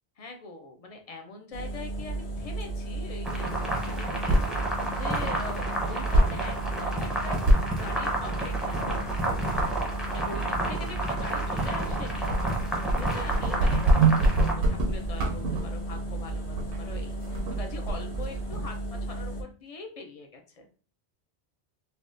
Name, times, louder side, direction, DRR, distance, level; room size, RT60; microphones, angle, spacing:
voice 1, 0.2-3.5 3.8-7.5 7.8-9.1 10.1-12.4 12.9-20.7, left 2 dB, 50° left, 4 dB, 0.4 m, -42 dB
sound 1, 1.5-19.4, right 2 dB, 80° left, 0.9 m, -34 dB
sound 2, 3.2-14.5, right 2 dB, ahead, 0.5 m, -31 dB
sound 3, 3.9-18.7, right 1 dB, 65° right, 0.8 m, -28 dB
3.4 x 2.3 x 2.5 m, 0.40 s
omnidirectional pair, 1.1 m